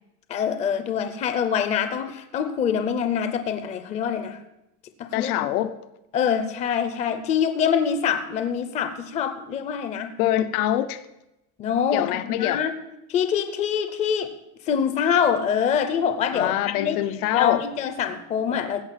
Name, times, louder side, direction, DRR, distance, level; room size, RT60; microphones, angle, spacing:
voice 1, 0.3-4.4 5.0-5.3 6.1-10.1 11.6-12.8 13.1-14.3 14.7-18.8, left 7 dB, 15° left, 9 dB, 0.5 m, -25 dB
voice 2, 5.1-5.8 10.2-11.0 11.9-12.6 16.3-17.6, left 13 dB, 85° left, 12 dB, 0.9 m, -24 dB
16.0 x 5.6 x 7.4 m, 0.90 s
supercardioid pair, 165°, 43 cm